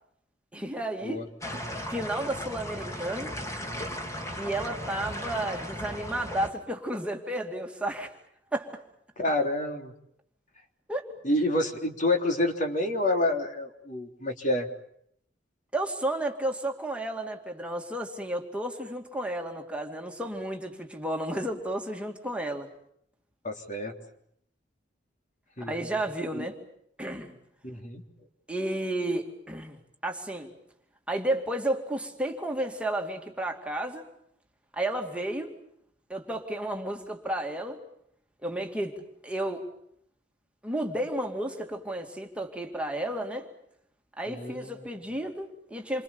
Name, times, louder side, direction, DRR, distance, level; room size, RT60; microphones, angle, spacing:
voice 1, 0.5-1.3 1.9-3.3 4.4-8.1 8.5-8.8 10.9-11.1 15.7-22.7 25.6-26.6 27.0-27.3 28.5-29.8 30.0-30.5 31.1-34.1 34.7-35.5 36.1-37.8 38.4-39.6 40.6-43.5 44.2-46.0, right 1 dB, 5° right, 2 dB, 2.5 m, -32 dB
sound 1, 1.4-6.5, equal, 15° left, 3.0 m, -36 dB
voice 2, 9.2-9.9 11.2-14.7 23.4-23.9 25.6-25.8 26.3-26.5 27.6-28.0 44.3-44.8, left 1 dB, 45° left, 4 dB, 3.5 m, -28 dB
28.5 x 26.0 x 7.1 m, 0.71 s
head